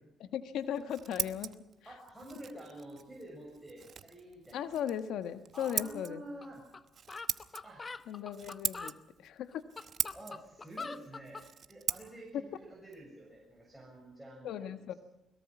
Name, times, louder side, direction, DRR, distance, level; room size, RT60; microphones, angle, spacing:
voice 1, 0.2-1.6 4.5-6.2 8.1-9.6 14.4-14.9, left 9 dB, 80° left, 10 dB, 1.3 m, -37 dB
Scissors, 0.6-14.2, right 7 dB, 55° right, 1.0 m, -42 dB
voice 2, 1.8-4.7 5.5-6.6 7.6-7.9 10.1-11.4 11.7-14.7, right 1 dB, 5° right, -2 dB, 6.7 m, -49 dB
sound 1, 6.4-6.5 6.7-6.8 7.1-9.0 9.5-11.5, left 4 dB, 30° left, 0.9 m, -43 dB
22.0 x 21.5 x 6.1 m, 0.96 s
cardioid pair, 90°, 0 cm